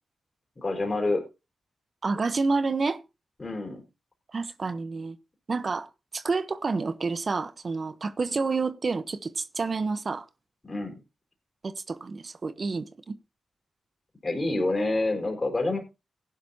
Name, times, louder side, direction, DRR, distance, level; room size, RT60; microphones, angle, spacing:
voice 1, 0.6-1.2 3.4-3.8 10.6-11.0 14.2-15.8, left 2 dB, 40° left, 4.4 m, -27 dB
voice 2, 2.0-3.0 4.3-5.2 5.5-10.3 11.6-13.2, right 4 dB, 55° right, 0.9 m, -29 dB
16.0 x 11.0 x 2.8 m
supercardioid pair, 40°, 0 cm